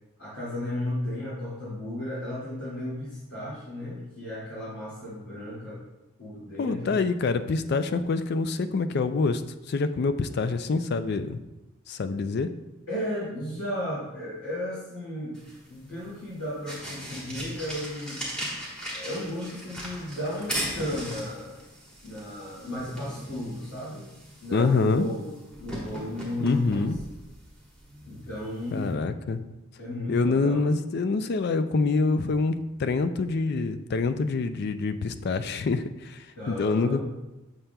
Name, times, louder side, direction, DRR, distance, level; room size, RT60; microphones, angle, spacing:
voice 1, 0.2-5.8 6.2-7.0 12.9-15.4 15.7-18.3 18.9-21.6 22.0-24.1 24.4-26.9 28.0-29.0 29.8-30.7 36.4-37.0, left 1 dB, 90° left, -10 dB, 2.2 m, -34 dB
voice 2, 6.6-9.4 9.7-11.4 11.9-12.5 24.5-25.1 26.4-27.0 28.7-29.4 30.1-37.0, left 4 dB, 50° left, 10 dB, 0.3 m, -26 dB
sound 1, 15.3-28.9, equal, 5° left, 1.3 m, -39 dB
7.3 x 6.5 x 2.3 m, 1.0 s
head